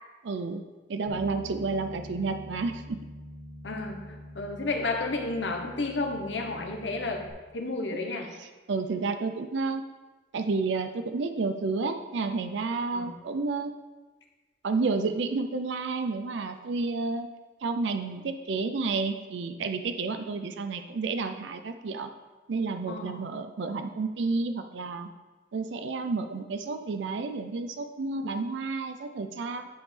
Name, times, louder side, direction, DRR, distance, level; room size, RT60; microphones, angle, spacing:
voice 1, 0.2-0.6 0.9-3.0 8.4-9.8 10.3-13.7 14.6-17.3 17.6-22.1 22.5-25.1 25.5-29.7, right 4 dB, 70° right, 7 dB, 0.5 m, -30 dB
Bass guitar, 1.1-7.3, equal, 50° right, 2.0 m, -45 dB
voice 2, 3.6-7.2 7.5-8.3 12.9-13.1 22.9-23.2, left 3 dB, 70° left, 3 dB, 1.0 m, -32 dB
10.0 x 5.2 x 3.3 m, 1.2 s
head